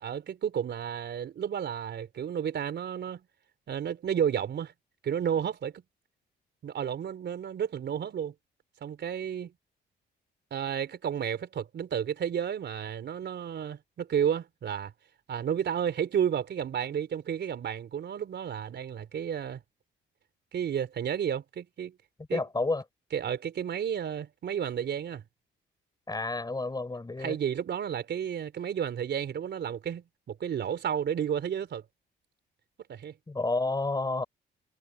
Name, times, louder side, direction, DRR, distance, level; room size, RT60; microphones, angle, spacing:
voice 1, 0.0-3.2 3.7-4.7 5.0-5.8 6.6-8.3 8.8-9.5 10.5-14.9 15.3-19.6 20.5-21.9 22.3-22.4 23.1-25.2 27.2-31.8 32.9-33.1, right 8 dB, 60° right, 4.0 m, -32 dB
voice 2, 22.3-22.8 26.1-27.4 33.3-34.2, left 2 dB, 20° left, 6.6 m, -30 dB
cardioid pair, 90°, 20 cm